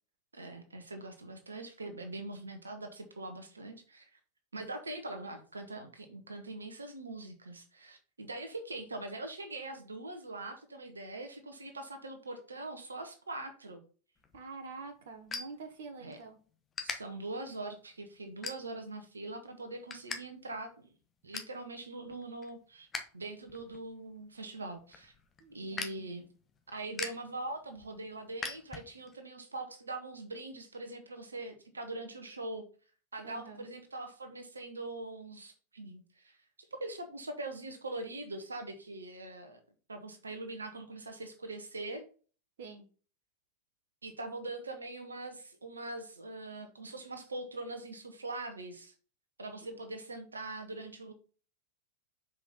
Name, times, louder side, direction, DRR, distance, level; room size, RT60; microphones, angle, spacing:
voice 1, 0.3-4.2 4.5-13.8 16.0-16.2 16.8-20.9 21.2-22.9 23.1-25.1 25.5-26.3 26.7-32.6 33.1-39.6 39.9-42.0 44.0-48.9 49.4-51.1, right 2 dB, 75° right, 6 dB, 1.1 m, -42 dB
sound 1, 14.2-16.2 16.7-17.0 17.5-17.8 18.4-19.0 19.4-20.2 20.5-20.6 20.9-21.6 22.0-23.1 23.4-29.2, left 4 dB, 20° left, 1.2 m, -42 dB
voice 2, 14.3-16.4 25.4-26.1 33.2-33.6 42.6-42.9 49.6-49.8, right 4 dB, 60° right, 7 dB, 1.1 m, -47 dB
6.2 x 5.1 x 4.1 m, 0.39 s
figure-of-eight pair, 90°, 0 cm